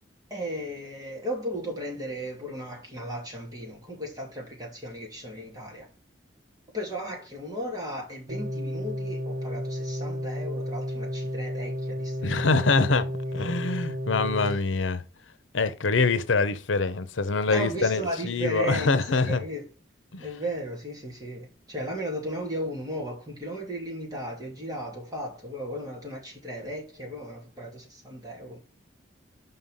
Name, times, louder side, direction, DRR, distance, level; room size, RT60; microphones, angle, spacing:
voice 1, 0.3-5.9 6.7-12.7 14.4-14.6 17.5-19.6 20.2-28.6, equal, 20° right, 2.7 m, -35 dB
sound 1, 8.3-14.6, equal, 50° right, 1.2 m, -32 dB
voice 2, 12.2-13.0 13.3-15.0 15.5-19.4 20.1-20.2, left 3 dB, 85° left, 0.8 m, -25 dB
5.6 x 5.6 x 5.5 m
head